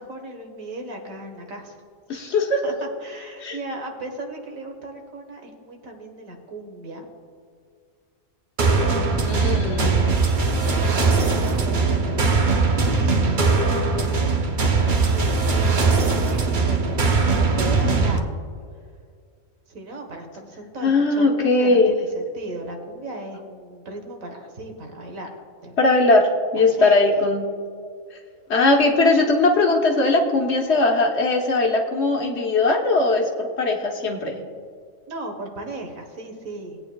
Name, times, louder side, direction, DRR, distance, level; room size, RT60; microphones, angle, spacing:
voice 1, 0.0-1.8 2.1-2.3 2.6-2.7 3.0-7.1 8.8-10.1 10.6-12.5 12.8-14.3 14.9-18.4 19.7-25.3 25.6-25.8 26.6-27.3 35.1-36.8, right 2 dB, 85° right, 3 dB, 1.7 m, -36 dB
voice 2, 2.1-2.6 3.4-3.6 9.2-10.0 20.8-21.9 25.8-26.2 26.5-27.4 28.1-28.2 28.5-34.4, left 2 dB, 55° left, 1 dB, 1.4 m, -19 dB
sound 1, 8.6-18.2, right 4 dB, 45° right, 0.8 m, -20 dB
19.0 x 8.8 x 2.3 m, 2.1 s
omnidirectional pair, 1.4 m